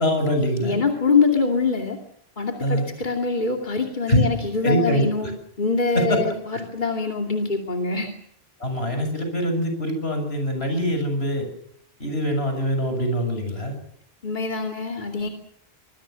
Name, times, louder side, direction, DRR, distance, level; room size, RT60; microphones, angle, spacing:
voice 1, 0.0-0.8 2.6-2.9 4.1-4.2 4.6-5.3 5.9-6.2 6.5-6.6 8.6-11.5 12.0-13.8, equal, 85° left, 6 dB, 7.6 m, -23 dB
voice 2, 0.6-2.0 2.4-5.3 5.6-8.1 14.2-15.3, left 4 dB, 50° left, 2 dB, 2.8 m, -24 dB
26.0 x 21.0 x 6.7 m, 0.68 s
omnidirectional pair, 1.0 m